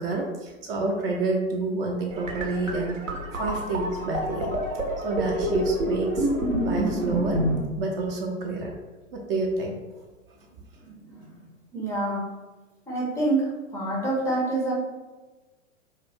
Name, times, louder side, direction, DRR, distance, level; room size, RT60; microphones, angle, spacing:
voice 1, 0.0-3.0 3.4-4.5 5.0-6.3 6.6-7.4 7.8-8.7 9.1-9.8, right 3 dB, 50° right, 0 dB, 0.5 m, -28 dB
sound 1, 2.1-7.6, right 1 dB, 85° right, 0.8 m, -28 dB
voice 2, 10.8-12.3 12.9-14.7, right 2 dB, 10° left, -4 dB, 0.3 m, -28 dB
2.3 x 2.0 x 3.4 m, 1.2 s
figure-of-eight pair, 105°, 38 cm